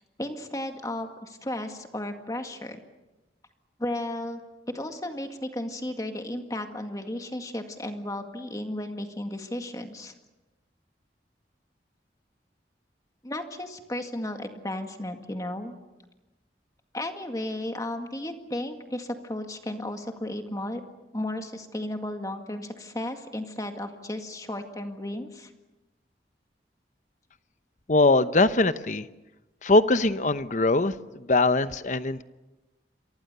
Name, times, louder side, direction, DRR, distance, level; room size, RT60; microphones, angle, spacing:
voice 1, 0.2-2.8 3.8-4.4 4.7-10.1 13.2-15.8 16.9-20.8 21.1-25.5, left 1 dB, 20° left, 5 dB, 2.0 m, -34 dB
voice 2, 27.9-29.1 29.6-32.2, left 2 dB, 45° left, 12 dB, 0.9 m, -22 dB
29.0 x 24.0 x 6.8 m, 1.1 s
head